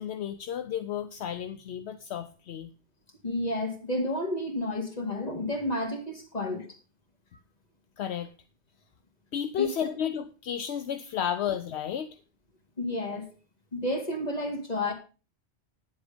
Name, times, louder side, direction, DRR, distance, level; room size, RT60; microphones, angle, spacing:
voice 1, 0.0-2.7 8.0-8.3 9.3-12.1, left 9 dB, 75° left, 10 dB, 0.9 m, -32 dB
voice 2, 3.2-6.7 9.6-9.7 12.8-13.3 13.7-14.9, left 1 dB, 35° left, 3 dB, 2.4 m, -31 dB
10.0 x 7.9 x 5.1 m, 0.34 s
omnidirectional pair, 1.1 m